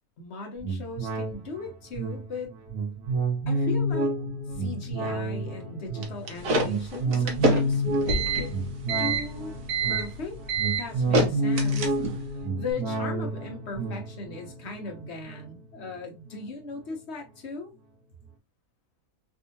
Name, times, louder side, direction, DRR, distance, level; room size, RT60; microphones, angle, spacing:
voice 1, 0.2-2.5 3.5-4.1 4.5-8.5 9.0-9.6 9.8-12.0 12.6-17.7, left 3 dB, 50° left, 1.1 m, -38 dB
sound 1, 0.6-16.3 16.7-16.8, right 1 dB, 80° right, 1.4 m, -30 dB
sound 2, 6.0-12.3, right 2 dB, 65° right, 1.2 m, -26 dB
3.5 x 2.7 x 2.6 m
omnidirectional pair, 1.6 m